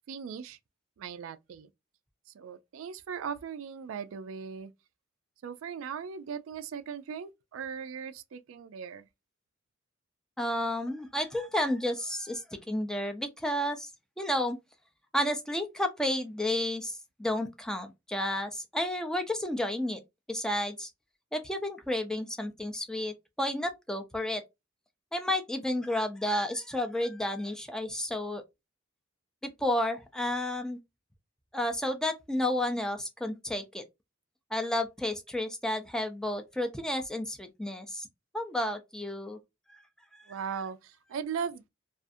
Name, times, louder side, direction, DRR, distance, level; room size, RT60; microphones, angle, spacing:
voice 1, 0.1-0.6 1.0-1.7 2.3-4.7 5.4-9.1 40.3-41.7, right 7 dB, 85° right, 0.3 m, -38 dB
voice 2, 10.4-13.9 14.2-14.6 15.1-20.0 20.3-20.9 21.3-24.4 25.1-28.4 29.6-30.8 31.5-33.8 34.5-38.1 38.3-39.4 39.7-39.8 40.1-40.2, left 1 dB, 5° left, 0.4 m, -31 dB
2.4 x 2.4 x 2.5 m
head